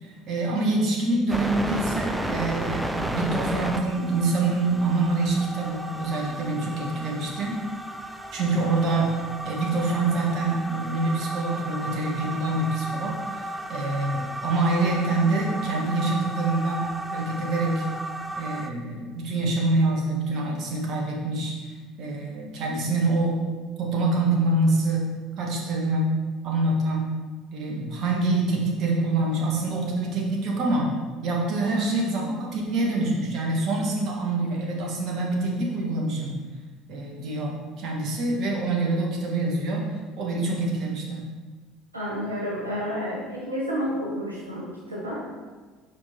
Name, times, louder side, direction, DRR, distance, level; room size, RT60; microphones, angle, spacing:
voice 1, 0.0-7.6 8.3-17.8 18.4-21.7 22.0-23.4 23.8-25.1 25.4-26.1 26.4-27.1 27.5-30.9 31.2-36.4 36.9-39.8 40.2-41.2, right 2 dB, 50° right, -1 dB, 1.6 m, -26 dB
sound 1, 1.3-18.7, right 1 dB, 5° right, 0.6 m, -33 dB
voice 2, 41.9-45.2, equal, 90° right, -4 dB, 0.9 m, -30 dB
6.2 x 5.0 x 4.4 m, 1.4 s
figure-of-eight pair, 65°, 0 cm